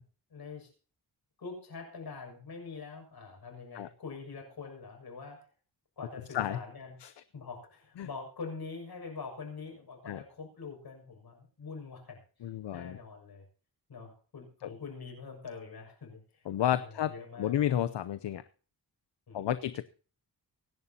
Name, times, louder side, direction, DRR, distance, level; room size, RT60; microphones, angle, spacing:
voice 1, 0.3-0.7 1.4-5.4 6.0-7.0 7.3-13.4 13.9-16.4 16.7-17.6 19.3-19.5, left 4 dB, 60° left, 2 dB, 6.6 m, -44 dB
voice 2, 12.4-13.0 14.6-14.7 16.5-18.4 19.3-19.8, left 11 dB, 80° left, 13 dB, 0.8 m, -31 dB
25.0 x 11.0 x 2.9 m, 0.39 s
wide cardioid pair, 100°, 41 cm